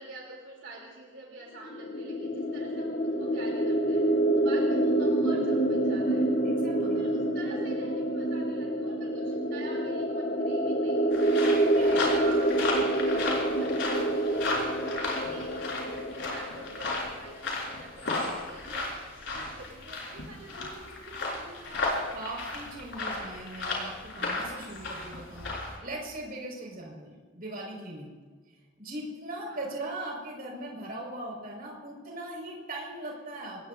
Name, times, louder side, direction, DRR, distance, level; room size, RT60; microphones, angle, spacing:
voice 1, 0.0-6.3 6.8-14.4 14.8-22.1 29.4-29.7, right 2 dB, 75° right, -2 dB, 3.1 m, -47 dB
sound 1, 1.6-17.3, right 1 dB, 40° left, 0.9 m, -27 dB
voice 2, 6.4-7.0 11.7-12.0 22.1-28.1 28.8-33.7, right 1 dB, 45° right, 0 dB, 5.3 m, -40 dB
sound 2, 11.1-25.8, left 2 dB, 75° left, 5.8 m, -34 dB
26.5 x 20.5 x 2.7 m, 1.5 s
head